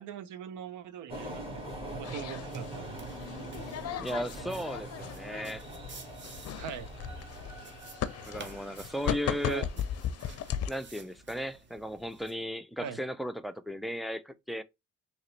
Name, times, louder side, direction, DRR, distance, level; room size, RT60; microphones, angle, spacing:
voice 1, 0.0-1.6 2.0-2.9 6.5-6.9 9.5-9.7 12.8-13.0, right 8 dB, 85° right, 0.7 m, -41 dB
sound 1, 1.1-10.6, right 1 dB, 20° right, 1.8 m, -44 dB
sound 2, 2.0-10.7, left 9 dB, 55° left, 0.5 m, -37 dB
sound 3, 2.5-12.4, right 3 dB, 40° right, 1.0 m, -52 dB
voice 2, 4.0-5.6 8.3-9.7 10.7-14.6, equal, ahead, 0.4 m, -36 dB
3.8 x 3.0 x 3.1 m
cardioid pair, 90°, 30 cm